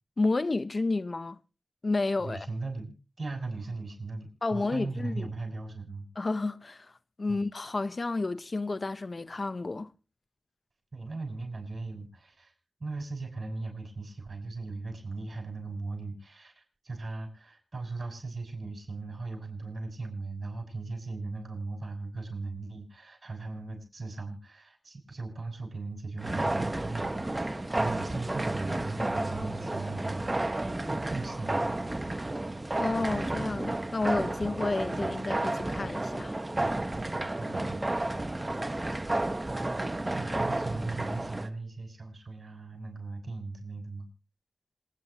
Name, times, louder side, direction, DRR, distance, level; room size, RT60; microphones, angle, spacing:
voice 1, 0.2-1.4 1.8-2.5 4.4-5.3 6.2-6.9 7.2-9.9 32.8-36.3 36.6-36.8, left 3 dB, 55° left, 0.7 m, -31 dB
voice 2, 2.2-6.1 7.3-7.4 10.9-12.5 12.8-30.5 31.1-31.7 34.6-34.7 37.0-37.8 40.1-44.1, right 3 dB, 60° right, 6.5 m, -38 dB
sound 1, 26.2-41.5, right 2 dB, 35° right, 1.1 m, -32 dB
27.0 x 9.8 x 2.9 m
cardioid pair, 50°, 0 cm